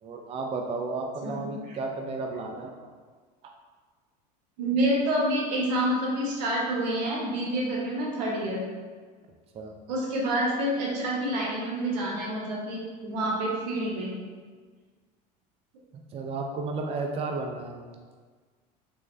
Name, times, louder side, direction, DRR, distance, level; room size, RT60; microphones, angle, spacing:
voice 1, 0.0-2.9 3.4-3.5 9.5-9.8 15.9-17.8, right 3 dB, 30° right, 2 dB, 0.4 m, -33 dB
voice 2, 4.6-8.6 9.9-14.1, right 1 dB, 85° right, -3 dB, 1.0 m, -28 dB
3.3 x 3.0 x 2.6 m, 1.5 s
supercardioid pair, 90°, 21 cm